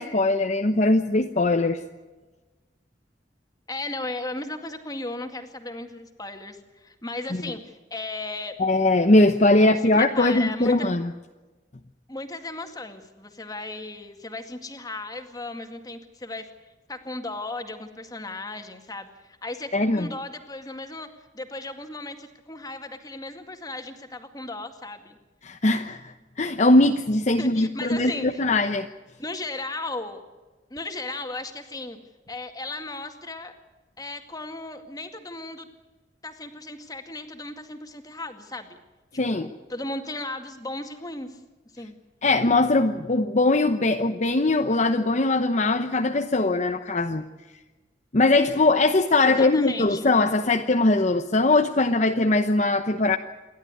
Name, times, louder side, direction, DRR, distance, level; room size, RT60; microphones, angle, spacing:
voice 1, 0.0-1.8 7.3-7.4 8.6-11.1 19.7-20.1 25.4-28.9 39.2-39.5 42.2-47.2 48.1-53.2, left 2 dB, 40° left, 5 dB, 0.9 m, -21 dB
voice 2, 3.7-8.6 9.9-10.9 12.1-16.5 16.9-25.2 27.4-28.4 29.2-30.2 30.7-32.0 32.3-33.6 34.0-35.7 36.2-38.8 39.3-41.4 41.7-42.0 49.3-50.1, left 2 dB, 20° left, 6 dB, 2.1 m, -36 dB
28.5 x 12.0 x 9.6 m, 1.2 s
head